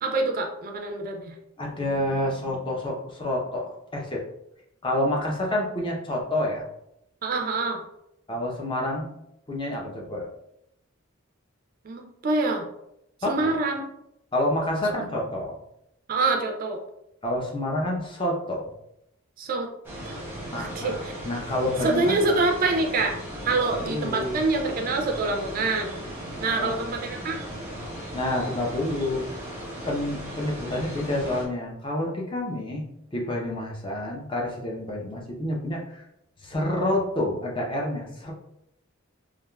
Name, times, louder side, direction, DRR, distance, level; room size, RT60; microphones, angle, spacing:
voice 1, 0.0-1.3 7.2-7.8 11.8-12.7 13.3-13.9 16.1-16.8 19.4-19.7 20.1-20.2 20.5-21.1 21.8-23.2 23.4-26.0 26.4-27.4, right 3 dB, 40° right, 3 dB, 0.3 m, -26 dB
voice 2, 1.6-4.2 4.8-6.6 8.3-9.1 9.5-10.3 13.2-13.6 14.3-15.6 17.2-18.7 20.5-22.4 23.6-24.4 26.5-26.9 28.1-29.3 29.9-32.8 33.1-36.0 36.4-38.3, left 1 dB, 25° left, -2 dB, 0.6 m, -28 dB
sound 1, 19.8-31.4, equal, 10° right, 0.7 m, -37 dB
3.4 x 2.4 x 2.2 m, 0.80 s
head